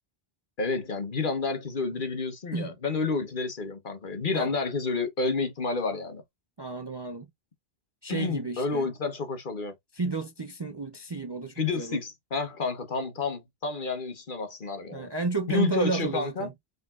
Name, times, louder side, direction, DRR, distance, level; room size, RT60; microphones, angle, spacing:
voice 1, 0.6-6.2 8.1-9.7 11.6-15.1 15.5-16.5, left 4 dB, 55° left, 1.2 m, -30 dB
voice 2, 6.6-7.3 8.0-8.9 9.9-12.0 14.9-16.5, right 3 dB, 30° right, 0.5 m, -31 dB
5.2 x 3.6 x 2.4 m
omnidirectional pair, 1.1 m